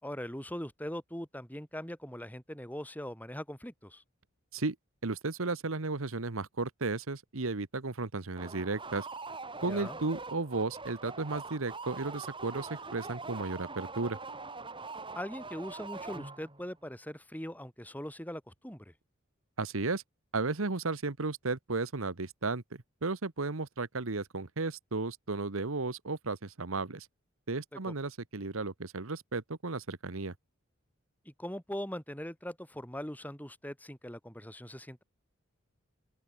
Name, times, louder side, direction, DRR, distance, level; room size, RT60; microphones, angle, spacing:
voice 1, 0.0-4.0 9.7-10.0 15.1-18.9 27.7-27.9 31.3-35.0, equal, 10° left, 5.6 m, -41 dB
voice 2, 5.0-9.1 9.6-14.2 19.6-20.0 20.3-27.1 27.5-30.3, right 3 dB, 80° right, 1.3 m, -34 dB
sound 1, 8.4-16.7, right 3 dB, 25° right, 6.7 m, -43 dB
open air
head